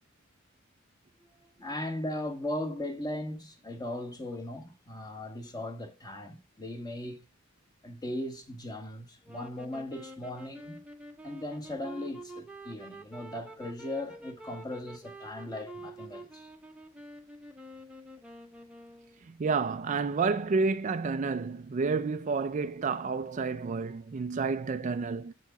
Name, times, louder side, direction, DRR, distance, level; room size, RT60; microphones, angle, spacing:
voice 1, 1.2-7.3 7.8-10.8 11.2-16.5, left 1 dB, 20° left, 1.2 m, -38 dB
sound 1, 9.2-19.2, right 1 dB, 5° right, 0.8 m, -47 dB
voice 2, 19.3-25.3, right 4 dB, 35° right, 0.4 m, -30 dB
7.9 x 4.7 x 5.8 m
head